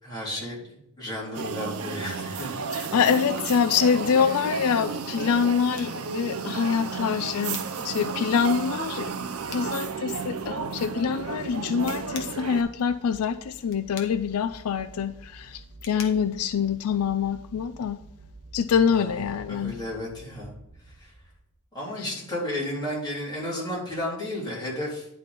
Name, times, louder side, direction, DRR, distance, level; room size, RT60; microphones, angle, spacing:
voice 1, 0.0-2.6 18.9-20.5 20.9-21.1 21.7-25.1, left 1 dB, 20° left, -6 dB, 3.5 m, -33 dB
sound 1, 1.3-12.6, right 5 dB, 75° right, 0.7 m, -33 dB
voice 2, 2.7-9.1 9.5-18.0 18.5-19.8, left 6 dB, 80° left, 10 dB, 0.4 m, -25 dB
sound 2, 5.7-17.5, left 6 dB, 60° left, 1.1 m, -48 dB
sound 3, 6.7-21.6, right 2 dB, 35° right, 0.8 m, -51 dB
10.5 x 4.2 x 5.2 m, 0.78 s
head